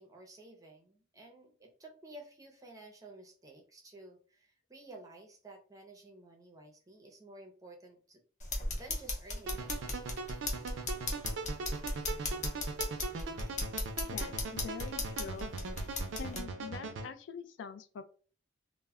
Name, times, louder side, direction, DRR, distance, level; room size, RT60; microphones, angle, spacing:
voice 1, 0.0-8.2 8.8-9.7, right 2 dB, 20° right, 1 dB, 0.5 m, -53 dB
sound 1, 8.4-16.4, left 2 dB, 40° left, 0.7 m, -37 dB
sound 2, 9.5-17.1, right 3 dB, 75° right, 0.4 m, -40 dB
voice 2, 14.1-15.5 15.9-18.0, left 5 dB, 65° left, 10 dB, 0.3 m, -45 dB
2.1 x 2.0 x 3.4 m, 0.40 s
head